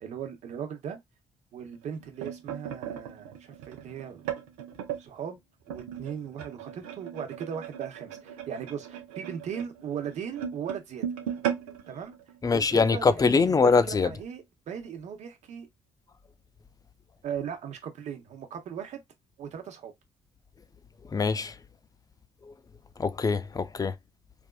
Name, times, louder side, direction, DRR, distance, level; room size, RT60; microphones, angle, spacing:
voice 1, 0.0-1.0 1.5-4.3 5.0-5.4 5.7-11.1 11.9-12.1 12.5-15.7 17.2-19.0 19.4-19.9, right 8 dB, 65° right, 0.9 m, -38 dB
sound 1, 1.7-5.0 5.7-13.0 13.4-13.6 13.8-14.1 14.9-15.0, right 9 dB, 90° right, 0.6 m, -37 dB
voice 2, 12.4-14.1 21.1-21.5 22.5-22.6 23.0-23.9, left 4 dB, 30° left, 0.5 m, -23 dB
3.4 x 2.5 x 2.3 m
hypercardioid pair, 55°, 13 cm